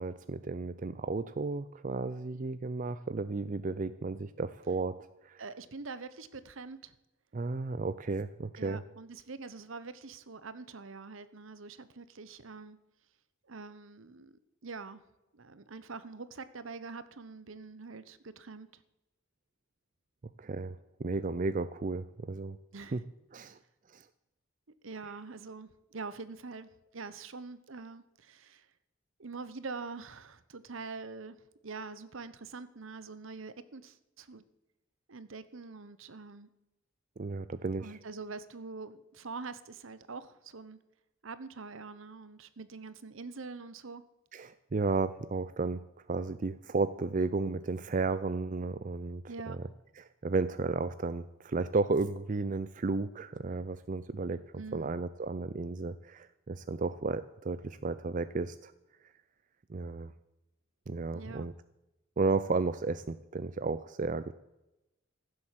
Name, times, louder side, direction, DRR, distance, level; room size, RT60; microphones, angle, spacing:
voice 1, 0.0-5.0 5.2-5.4 7.3-8.8 20.4-22.6 22.9-23.0 23.3-23.6 23.9-24.0 37.2-38.0 44.3-49.6 50.0-54.4 54.7-58.7 59.7-60.1 60.9-61.5 62.2-64.3, right 3 dB, 40° right, 13 dB, 0.4 m, -33 dB
voice 2, 5.4-6.9 8.6-12.8 13.5-14.3 14.6-15.0 15.3-18.8 22.7-23.0 24.8-28.7 29.2-31.4 31.6-34.4 35.1-36.5 37.8-40.8 41.2-44.0 49.3-49.6 54.6-54.9 61.1-61.5, right 4 dB, 70° right, 14 dB, 0.9 m, -44 dB
15.5 x 7.7 x 7.6 m, 0.95 s
head